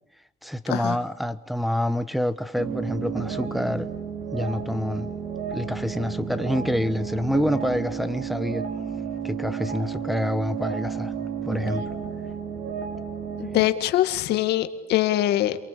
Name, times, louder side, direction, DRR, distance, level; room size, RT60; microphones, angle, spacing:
voice 1, 0.4-3.9 4.3-5.2 5.5-8.7 9.2-11.1 11.5-11.8, left 1 dB, ahead, 1.1 m, -27 dB
sound 1, 2.6-13.7, right 7 dB, 55° right, 4.3 m, -32 dB
voice 2, 13.4-15.6, left 13 dB, 80° left, 2.0 m, -23 dB
28.0 x 23.5 x 8.6 m
cardioid pair, 110°, 17 cm